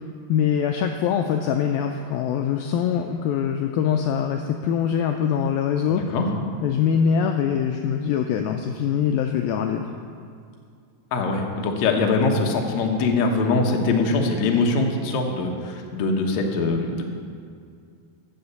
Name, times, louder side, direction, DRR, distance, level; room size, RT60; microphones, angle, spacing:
voice 1, 0.3-6.0 6.6-9.9, left 8 dB, 85° left, 4 dB, 2.1 m, -23 dB
voice 2, 5.9-6.3 11.1-17.0, left 3 dB, 65° left, 2 dB, 1.8 m, -22 dB
14.5 x 6.5 x 6.9 m, 2.2 s
omnidirectional pair, 4.7 m